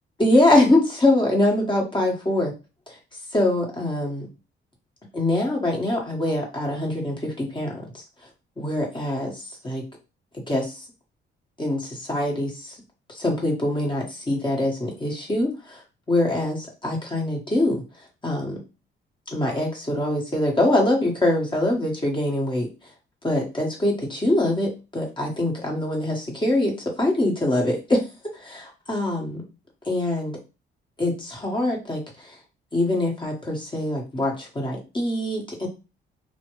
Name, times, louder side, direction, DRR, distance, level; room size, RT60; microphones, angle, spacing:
voice 1, 0.2-2.5 3.3-4.3 5.1-7.8 8.6-9.3 9.6-9.8 10.5-10.8 11.6-12.7 13.1-15.8 16.1-17.8 18.2-18.6 19.3-22.7 23.2-28.0 28.3-29.4 29.8-30.3 31.0-32.3 32.7-35.7, left 1 dB, 25° left, -1 dB, 1.3 m, -23 dB
3.0 x 2.2 x 3.1 m, 0.29 s
cardioid pair, 90°, 20 cm